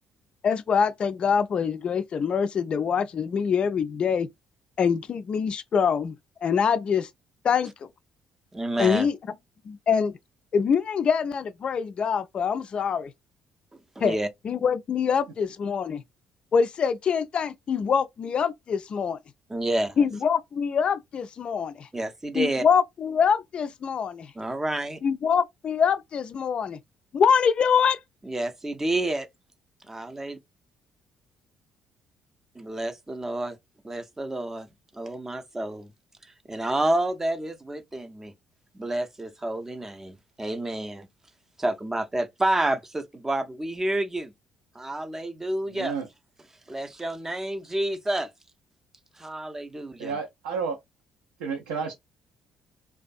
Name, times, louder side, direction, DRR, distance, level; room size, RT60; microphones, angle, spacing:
voice 1, 0.4-4.3 4.8-6.1 6.4-7.1 7.4-7.7 8.8-9.2 9.7-10.1 10.5-13.1 14.0-14.2 14.4-16.0 16.5-19.2 20.0-21.9 22.3-24.3 25.0-26.8 27.1-28.0, left 6 dB, 45° left, 0.3 m, -24 dB
voice 2, 8.5-9.1 14.0-14.3 19.5-20.0 21.9-22.6 24.4-25.0 28.2-29.3 29.9-30.4 32.6-33.6 33.8-34.7 34.9-35.9 36.5-38.3 38.7-41.1 41.6-44.3 44.7-46.0 46.7-48.3 49.2-50.1, right 1 dB, 15° right, 0.5 m, -29 dB
voice 3, 45.7-46.1 50.0-50.8 51.4-51.9, right 5 dB, 80° right, 0.5 m, -31 dB
2.5 x 2.2 x 2.5 m
hypercardioid pair, 50°, 2 cm